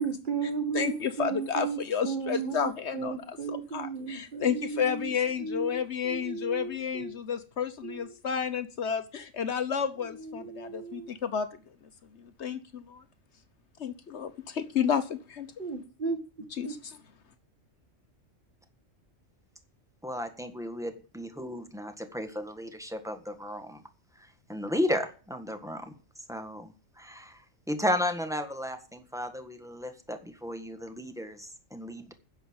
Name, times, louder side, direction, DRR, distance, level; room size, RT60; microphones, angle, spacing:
voice 1, 0.0-1.8 2.0-5.1 5.4-7.1 7.8-8.1 10.2-11.1 15.6-16.2 16.6-16.7, right 5 dB, 40° right, 1.8 m, -35 dB
voice 2, 0.7-11.5 12.1-13.0 13.8-15.5 16.5-17.0, left 7 dB, 60° left, 1.2 m, -31 dB
voice 3, 20.0-23.8 24.1-32.1, left 1 dB, 5° right, 1.5 m, -34 dB
10.5 x 7.0 x 8.6 m
omnidirectional pair, 1.3 m